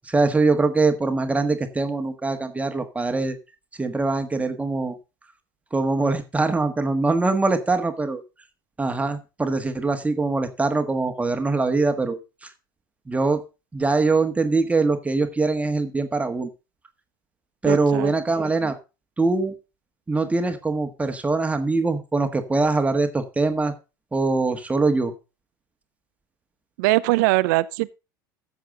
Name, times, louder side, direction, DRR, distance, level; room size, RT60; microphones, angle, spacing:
voice 1, 0.0-3.4 3.8-4.9 5.7-8.2 8.8-12.5 13.1-13.4 13.7-16.5 17.6-18.8 19.2-19.5 20.1-23.7 24.1-25.1, right 3 dB, 10° right, 1.5 m, -23 dB
voice 2, 17.7-18.1 26.8-27.9, right 20 dB, 60° right, 0.5 m, -21 dB
14.0 x 7.2 x 3.8 m
hypercardioid pair, 80°, 11 cm